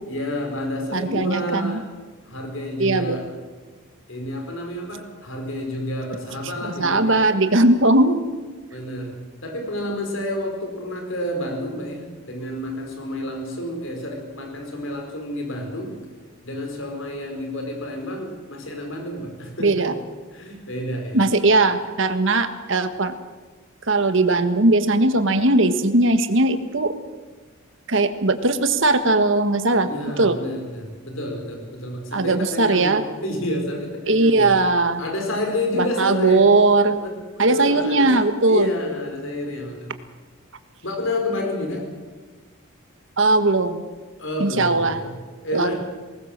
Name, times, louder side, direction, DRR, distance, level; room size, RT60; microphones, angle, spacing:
voice 1, 0.1-1.8 2.2-3.3 4.1-7.3 8.7-16.0 16.4-19.9 20.3-21.2 29.8-34.5 35.0-36.5 37.0-38.1 38.5-39.9 40.8-41.8 44.2-45.1 45.4-45.7, left 1 dB, 60° left, 2 dB, 4.9 m, -29 dB
voice 2, 0.9-1.8 2.8-3.2 6.8-8.2 19.6-19.9 21.1-23.1 23.9-26.9 27.9-29.9 30.2-30.4 32.1-33.0 34.1-35.0 35.7-37.0 37.4-38.7 43.2-43.8 44.4-45.0 45.5-45.7, right 2 dB, 60° right, 10 dB, 1.5 m, -19 dB
20.0 x 18.5 x 7.4 m, 1.4 s
head